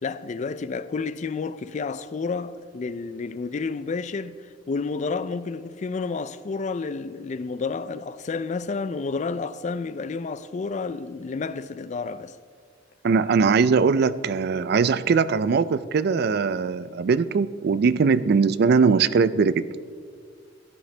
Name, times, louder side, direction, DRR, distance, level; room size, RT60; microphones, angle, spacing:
voice 1, 0.0-4.4 4.7-12.4, left 4 dB, 40° left, 0.4 m, -30 dB
voice 2, 13.0-19.9, right 5 dB, 55° right, 0.4 m, -21 dB
14.5 x 10.5 x 3.3 m
head